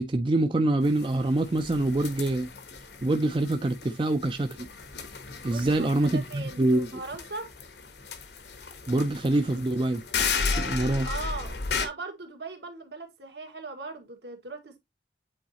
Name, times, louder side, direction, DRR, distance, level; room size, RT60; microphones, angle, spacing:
voice 1, 0.0-2.5 3.0-4.7 5.4-6.9 8.9-10.0 10.6-11.1, right 2 dB, 30° right, 0.4 m, -25 dB
sound 1, 0.8-11.9, left 5 dB, 70° left, 1.1 m, -35 dB
voice 2, 5.4-7.5 11.0-14.8, right 3 dB, 75° right, 1.7 m, -39 dB
8.6 x 4.0 x 2.8 m
head